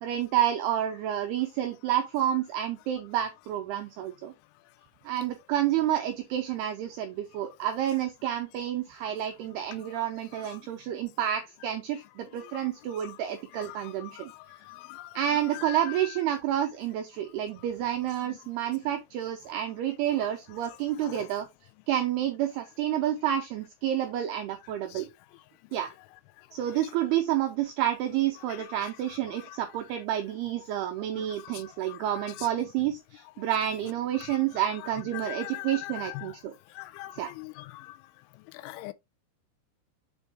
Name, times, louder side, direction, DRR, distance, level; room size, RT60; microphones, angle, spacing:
voice 1, 0.0-4.3 5.1-14.3 15.2-21.5 21.9-25.1 25.7-25.9 26.5-36.5 37.2-37.3, right 11 dB, 85° right, 2.3 m, -29 dB
voice 2, 15.5-16.1 21.0-21.2 32.4-32.5 34.2-34.4 35.1-36.3 37.0-37.1 37.4-37.5 38.6-38.9, left 18 dB, 85° left, 3.0 m, -39 dB
6.9 x 4.5 x 3.4 m
omnidirectional pair, 5.5 m